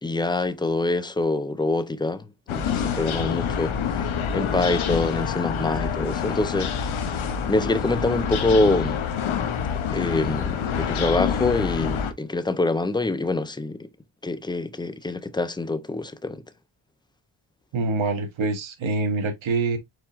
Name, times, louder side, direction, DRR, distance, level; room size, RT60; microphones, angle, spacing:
voice 1, 0.0-7.2 7.5-9.0 9.9-13.9 14.2-16.4, left 2 dB, 10° left, 0.4 m, -25 dB
sound 1, 2.5-12.1, left 7 dB, 85° left, 0.8 m, -27 dB
voice 2, 17.7-19.8, right 3 dB, 75° right, 1.2 m, -25 dB
4.9 x 4.2 x 2.4 m
wide cardioid pair, 120°, 47 cm